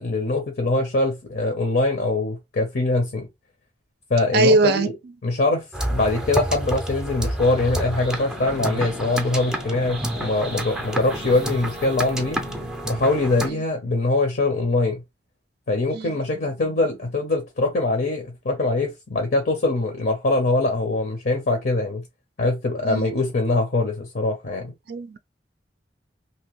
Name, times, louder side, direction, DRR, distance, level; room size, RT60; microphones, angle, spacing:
voice 1, 0.0-3.3 4.1-4.9 5.2-5.6 5.9-12.4 12.8-15.0 15.7-22.0 22.4-24.7, left 2 dB, 60° left, 0.7 m, -23 dB
voice 2, 4.3-4.9 15.9-16.1 22.8-23.1 24.9-25.2, right 2 dB, 60° right, 0.4 m, -20 dB
sound 1, 5.7-13.5, right 1 dB, 5° right, 0.5 m, -29 dB
2.8 x 2.6 x 3.0 m
head